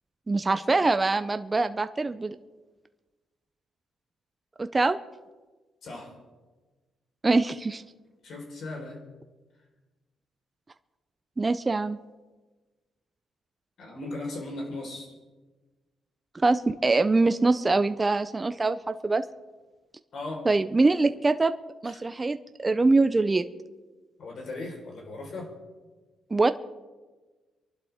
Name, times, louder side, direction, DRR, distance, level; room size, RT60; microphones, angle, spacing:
voice 1, 0.3-2.4 4.6-5.0 7.2-7.8 11.4-12.0 16.4-19.2 20.5-21.5 21.8-23.4 26.3-26.5, right 3 dB, 20° right, 10 dB, 0.6 m, -23 dB
voice 2, 5.8-6.1 8.2-9.0 13.8-15.1 20.1-20.5 21.8-22.0 24.2-25.5, left 2 dB, 60° left, 1 dB, 4.4 m, -37 dB
25.5 x 11.5 x 3.6 m, 1.3 s
cardioid pair, 90°, 0 cm